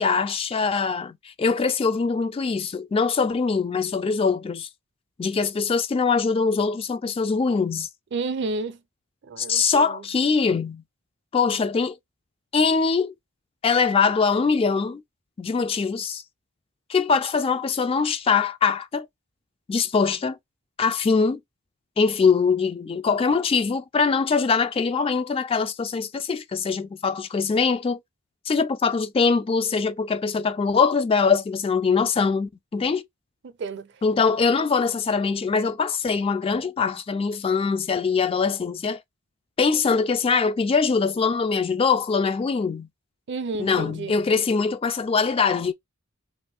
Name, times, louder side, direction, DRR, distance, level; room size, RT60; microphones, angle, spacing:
voice 1, 0.0-4.7 5.2-7.9 9.4-10.8 11.3-12.0 12.5-13.1 13.6-15.0 15.4-16.2 16.9-19.1 19.7-20.4 20.8-21.4 22.0-28.0 28.5-33.0 34.0-39.0 39.6-42.9 43.6-45.7, left 5 dB, 25° left, 0.3 m, -22 dB
voice 2, 8.1-8.8 9.2-10.1 33.4-33.9 43.3-44.2, right 3 dB, 55° right, 0.5 m, -31 dB
2.9 x 2.4 x 3.4 m
head